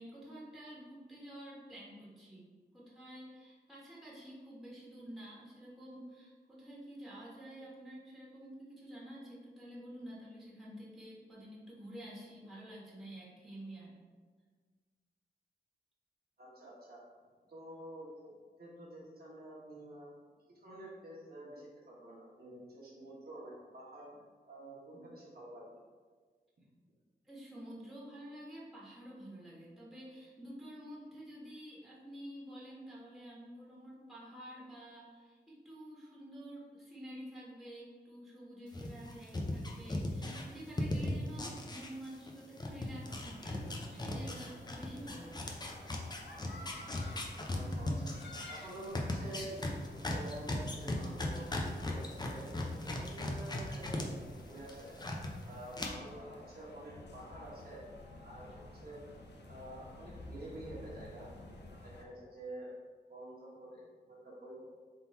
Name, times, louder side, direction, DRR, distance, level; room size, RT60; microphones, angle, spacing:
voice 1, 0.0-2.4 2.7-14.0 27.2-45.5 58.5-58.6, equal, ahead, -7 dB, 1.4 m, -49 dB
voice 2, 16.4-17.0 17.5-18.1 18.6-20.1 20.5-24.1 24.5-25.7 47.5-48.1 48.5-49.7 50.0-51.5 51.9-52.5 52.8-55.1 55.4-57.8 58.2-59.0 59.5-61.3 61.8-62.7 63.1-64.6, right 1 dB, 60° right, -6 dB, 1.3 m, -49 dB
sound 1, 38.7-42.3 42.6-54.0 54.4-55.3 55.7-55.9, left 1 dB, 25° left, 0.6 m, -37 dB
sound 2, 43.0-62.0, left 2 dB, 75° left, 0.6 m, -53 dB
3.8 x 2.8 x 4.3 m, 1.5 s
wide cardioid pair, 80°, 18 cm